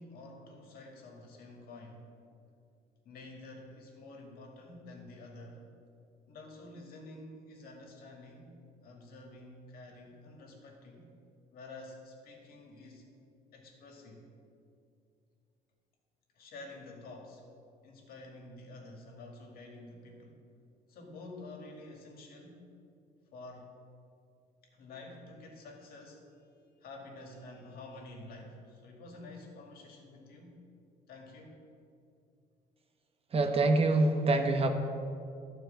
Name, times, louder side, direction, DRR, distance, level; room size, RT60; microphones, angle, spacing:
voice 1, 0.0-2.0 3.1-5.6 6.3-11.0 11.5-13.0 13.5-14.3 16.4-17.4 17.8-20.3 20.9-22.7 23.3-23.7 24.8-26.2 26.8-30.6 31.1-31.6, left 2 dB, 65° left, 1 dB, 2.1 m, -49 dB
voice 2, 33.3-34.7, right 2 dB, 35° right, 6 dB, 1.1 m, -25 dB
12.0 x 4.6 x 7.6 m, 2.4 s
cardioid pair, 110°, 17 cm